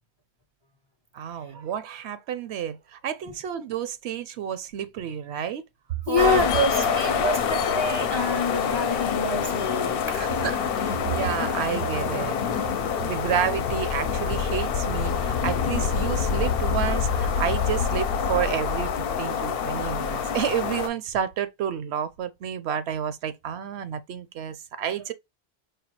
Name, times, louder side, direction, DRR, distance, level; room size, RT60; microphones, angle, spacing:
voice 1, 1.1-5.6 6.1-6.4 10.2-12.4 13.0-18.9 19.2-25.1, right 9 dB, 80° right, 0.9 m, -30 dB
voice 2, 6.1-10.3, left 2 dB, 40° left, 0.4 m, -26 dB
sound 1, 6.2-20.9, left 6 dB, 70° left, 0.7 m, -26 dB
4.9 x 2.3 x 2.8 m
omnidirectional pair, 1.1 m